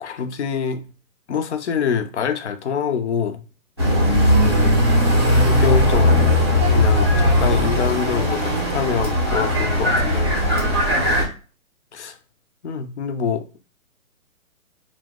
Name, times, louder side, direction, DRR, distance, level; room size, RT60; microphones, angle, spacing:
voice 1, 0.0-0.8 1.3-3.4 4.4-4.8 5.4-6.3 6.7-10.3 11.9-12.2 12.6-13.5, left 7 dB, 55° left, 0.5 m, -25 dB
sound 1, 3.8-11.2, left 1 dB, 20° right, 0.4 m, -18 dB
2.7 x 2.0 x 3.5 m
hypercardioid pair, 165°, 43 cm